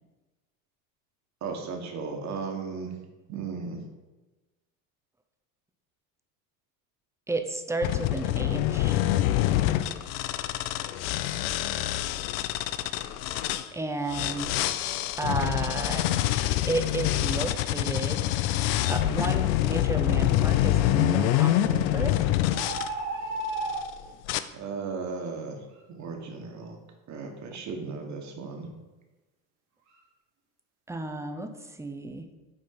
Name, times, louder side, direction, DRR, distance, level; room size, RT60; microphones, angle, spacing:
voice 1, 1.4-3.0 3.3-3.8 24.5-25.6 25.9-26.8 27.1-28.7, right 4 dB, 40° right, 2 dB, 1.6 m, -35 dB
voice 2, 7.3-9.0 13.7-14.6 15.2-16.1 16.7-18.2 18.9-22.2 30.9-32.2, right 2 dB, 5° right, 6 dB, 0.6 m, -32 dB
sound 1, 7.8-13.6 14.1-22.9 23.5-23.9 24.3-24.4, left 13 dB, 65° left, 0.6 m, -26 dB
sound 2, 22.5-23.9, right 2 dB, 85° right, 2.3 m, -32 dB
6.4 x 4.3 x 5.8 m, 1.2 s
supercardioid pair, 95°, 43 cm